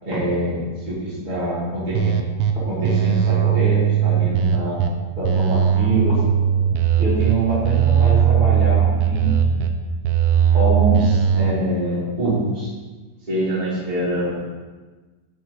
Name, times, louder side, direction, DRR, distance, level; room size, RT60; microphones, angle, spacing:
voice 1, 0.0-2.1 2.5-4.8 5.1-6.2 7.0-9.7 10.5-12.7 13.3-14.4, right 1 dB, 25° right, -10 dB, 1.0 m, -24 dB
sound 1, 2.0-2.5 2.8-4.9 5.2-7.3 7.6-9.7 10.0-11.5, right 9 dB, 85° right, 2.5 m, -18 dB
13.5 x 5.7 x 2.9 m, 1.3 s
omnidirectional pair, 5.5 m